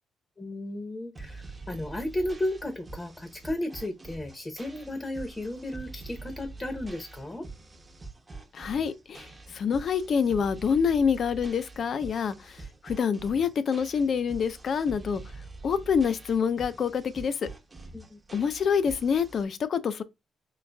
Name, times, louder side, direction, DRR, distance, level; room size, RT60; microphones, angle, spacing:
voice 1, 0.4-7.5 17.9-18.2, left 1 dB, 20° left, 0.8 m, -34 dB
sound 1, 1.1-19.4, right 3 dB, 25° right, 0.8 m, -45 dB
voice 2, 8.5-15.2 15.6-17.4 18.3-20.0, left 6 dB, 55° left, 0.5 m, -27 dB
4.3 x 3.9 x 2.2 m
cardioid pair, 90°, 0 cm